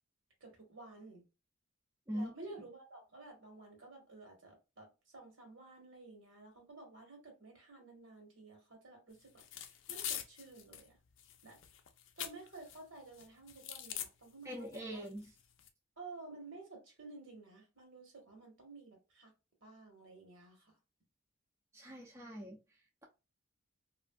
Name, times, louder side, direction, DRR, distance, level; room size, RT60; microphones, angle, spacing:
voice 1, 0.4-1.2 2.1-11.0 11.4-11.6 12.2-15.0 16.0-19.3 19.6-20.8, right 3 dB, 65° right, 1.4 m, -53 dB
voice 2, 2.1-2.5 14.4-15.3 21.7-22.6, equal, 15° right, 0.5 m, -42 dB
sound 1, 9.4-10.9 11.2-12.8 13.1-14.1 14.7-14.8 15.1-15.7, left 10 dB, 65° left, 0.4 m, -43 dB
3.1 x 2.5 x 2.3 m
head